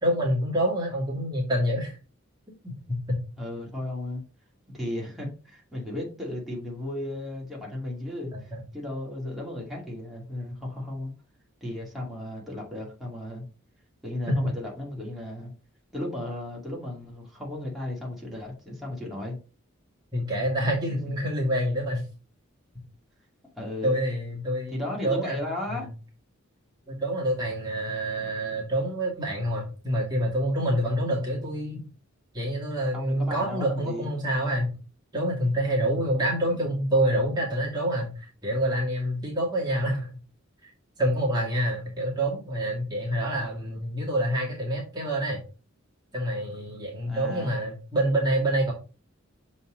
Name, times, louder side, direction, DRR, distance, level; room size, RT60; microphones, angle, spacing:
voice 1, 0.0-2.0 2.6-3.2 8.3-8.6 14.3-14.4 20.1-22.0 23.8-25.4 25.7-25.9 26.9-31.8 32.3-34.8 35.1-40.2 40.6-40.7 41.0-45.4 46.1-48.7, right 1 dB, 20° right, -4 dB, 2.0 m, -27 dB
voice 2, 3.4-4.2 4.7-11.1 11.6-13.5 14.0-15.5 15.9-19.4 20.9-21.0 23.6-24.0 24.7-25.9 32.9-34.2 36.5-36.7 47.0-47.5, left 1 dB, ahead, -4 dB, 2.2 m, -35 dB
6.8 x 4.2 x 3.8 m, 0.34 s
head